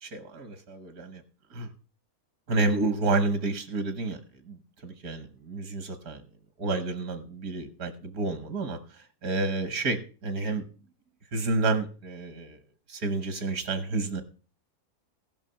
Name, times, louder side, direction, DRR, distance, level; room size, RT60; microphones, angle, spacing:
voice 1, 0.0-1.2 1.5-1.7 2.5-4.2 4.4-6.2 6.6-10.7 11.3-12.6 12.9-14.2, right 3 dB, 70° right, 9 dB, 1.7 m, -30 dB
15.5 x 5.8 x 5.6 m, 0.36 s
omnidirectional pair, 1.7 m